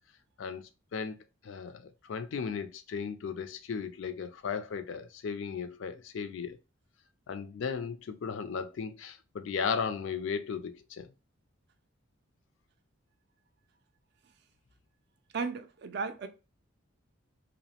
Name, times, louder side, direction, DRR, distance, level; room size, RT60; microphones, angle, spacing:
voice 1, 0.4-1.2 1.4-6.6 7.3-11.1, left 6 dB, 65° left, 0.3 m, -36 dB
voice 2, 15.3-16.3, right 4 dB, 50° right, 0.3 m, -35 dB
2.7 x 2.0 x 2.8 m
head